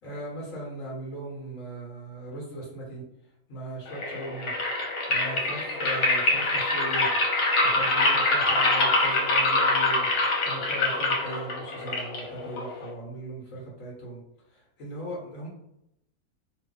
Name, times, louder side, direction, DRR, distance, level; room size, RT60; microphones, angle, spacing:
voice 1, 0.0-3.0 3.5-4.5 5.1-7.1 7.6-14.2 14.5-15.5, right 1 dB, 55° left, -3 dB, 1.2 m, -38 dB
sound 1, 3.9-12.9, left 2 dB, 80° left, 1.4 m, -25 dB
2.6 x 2.5 x 3.7 m, 0.80 s
omnidirectional pair, 1.7 m